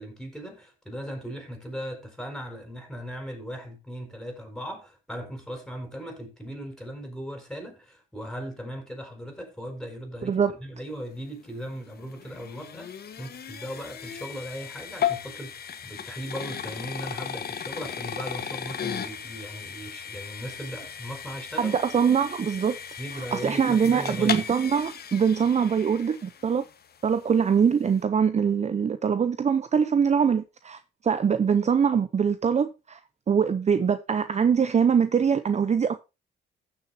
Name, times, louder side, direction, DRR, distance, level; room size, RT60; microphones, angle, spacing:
voice 1, 0.0-21.7 23.0-24.5, equal, 5° left, 5.2 m, -38 dB
voice 2, 10.2-10.5 21.6-22.8 23.3-26.6 27.0-33.0 33.3-36.0, right 7 dB, 35° right, 0.7 m, -23 dB
sound 1, 11.5-26.7, left 8 dB, 50° left, 1.4 m, -36 dB
15.5 x 6.8 x 2.8 m
cardioid pair, 90°, 20 cm